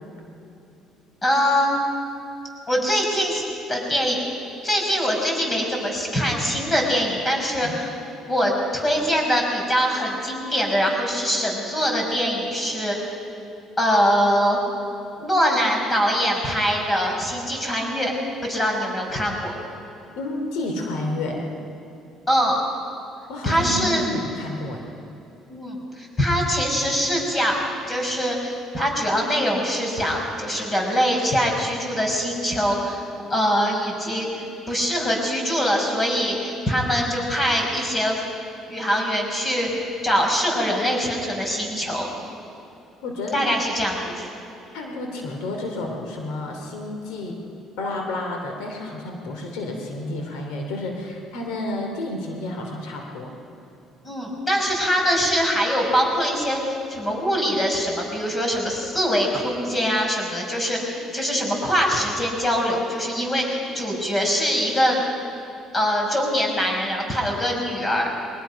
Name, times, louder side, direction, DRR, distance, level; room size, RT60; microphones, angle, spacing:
voice 1, 1.2-1.8 2.7-3.4 3.7-4.2 4.6-7.9 8.2-13.0 13.8-14.6 15.2-18.1 18.4-19.5 22.3-22.6 23.4-24.1 25.5-33.0 33.3-38.2 38.7-42.1 43.3-44.3 54.0-56.6 56.9-65.0 65.7-68.1, equal, 25° left, 1 dB, 5.8 m, -23 dB
voice 2, 20.2-21.5 23.3-24.9 43.0-43.6 44.7-47.4 47.8-53.3, left 2 dB, 85° left, 2 dB, 2.9 m, -30 dB
23.0 x 20.0 x 5.8 m, 2.8 s
cardioid pair, 95°, 0 cm